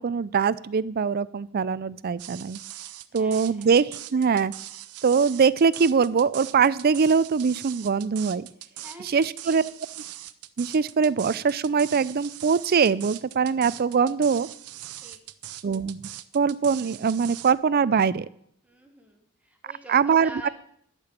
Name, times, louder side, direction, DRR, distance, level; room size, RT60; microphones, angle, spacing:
voice 1, 0.0-2.6 3.1-4.5 5.0-8.5 9.0-9.6 10.6-14.5 15.6-16.1 16.3-18.3 19.9-20.5, right 6 dB, 45° right, 18 dB, 0.4 m, -22 dB
sound 1, 2.2-17.5, right 14 dB, 90° right, 0.6 m, -41 dB
voice 2, 3.1-3.8 8.8-9.7 15.0-15.2 18.6-20.5, right 1 dB, 5° right, 3 dB, 1.4 m, -46 dB
11.5 x 5.9 x 8.4 m, 0.68 s
head